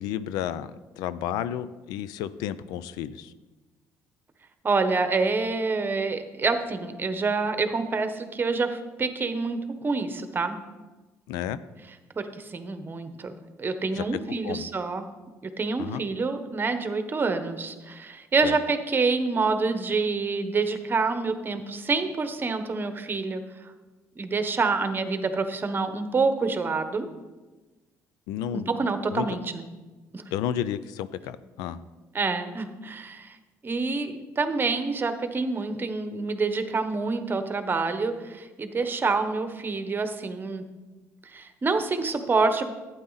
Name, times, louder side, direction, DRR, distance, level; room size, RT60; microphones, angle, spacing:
voice 1, 0.0-3.3 11.3-11.6 13.9-14.0 14.4-14.6 15.8-16.0 18.4-18.6 28.3-29.3 30.3-31.8, left 10 dB, 85° left, 15 dB, 0.4 m, -32 dB
voice 2, 4.6-10.5 12.2-13.3 13.6-15.0 15.6-23.4 24.2-27.1 28.5-29.6 30.1-30.2 32.1-33.4 33.6-40.7 41.3-42.6, right 4 dB, 30° right, 8 dB, 1.1 m, -27 dB
12.0 x 9.2 x 4.0 m, 1.2 s
supercardioid pair, 80°, 7 cm